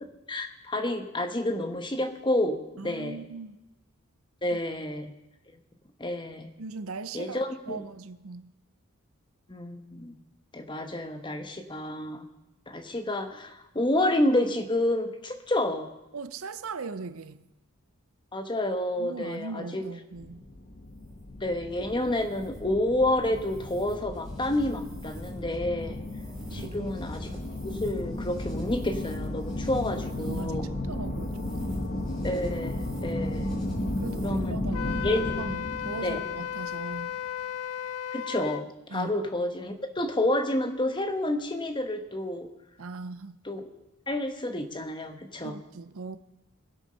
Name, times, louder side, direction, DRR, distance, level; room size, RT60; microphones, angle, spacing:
voice 1, 0.3-3.2 4.4-5.1 6.0-6.5 7.1-7.8 9.5-10.1 10.5-12.3 12.7-15.9 18.3-19.8 21.4-26.0 26.5-27.3 27.6-30.6 32.2-33.5 34.2-34.6 35.0-35.4 36.0-36.2 38.1-42.5 43.5-43.7 44.1-45.6, left 1 dB, 20° left, 1.1 m, -29 dB
voice 2, 2.8-3.6 4.5-4.6 6.6-8.5 16.1-17.4 19.0-20.4 26.5-26.9 29.8-29.9 30.1-31.7 34.0-35.1 35.4-37.2 38.9-39.1 42.8-43.4 45.4-46.2, right 4 dB, 75° right, 0.7 m, -39 dB
sound 1, 20.1-37.2, left 1 dB, 40° left, 1.2 m, -34 dB
sound 2, 20.8-34.7, equal, ahead, 3.6 m, -47 dB
Wind instrument woodwind instrument, 34.7-38.6, left 10 dB, 85° left, 0.4 m, -35 dB
22.0 x 8.2 x 5.6 m
head